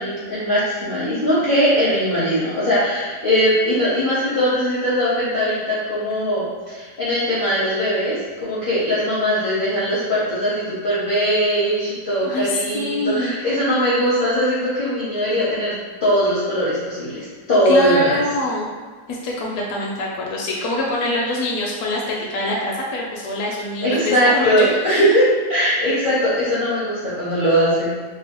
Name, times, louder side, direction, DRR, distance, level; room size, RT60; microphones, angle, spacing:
voice 1, 0.0-8.1 8.4-15.7 16.0-18.2 23.8-25.2 25.5-27.9, equal, 50° left, -10 dB, 0.6 m, -20 dB
voice 2, 12.2-13.6 17.2-17.3 17.7-18.7 19.1-25.1, left 1 dB, 75° left, -3 dB, 1.1 m, -24 dB
3.0 x 2.3 x 2.9 m, 1.5 s
omnidirectional pair, 1.7 m